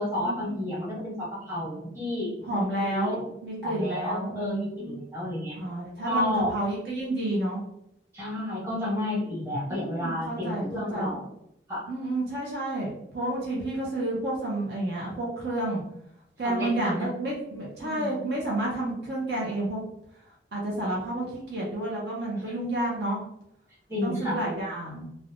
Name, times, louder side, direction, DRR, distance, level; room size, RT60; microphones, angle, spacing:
voice 1, 0.0-2.4 2.8-3.2 3.6-5.6 6.0-6.5 8.1-11.2 11.7-11.9 16.4-17.1 17.8-18.3 23.9-24.4, left 1 dB, 15° right, -8 dB, 1.2 m, -31 dB
voice 2, 2.4-5.0 5.6-7.6 9.6-11.1 11.9-15.8 16.4-19.8 20.5-23.2 24.0-25.1, right 1 dB, 60° right, -4 dB, 0.6 m, -30 dB
3.1 x 2.1 x 2.5 m, 0.78 s
head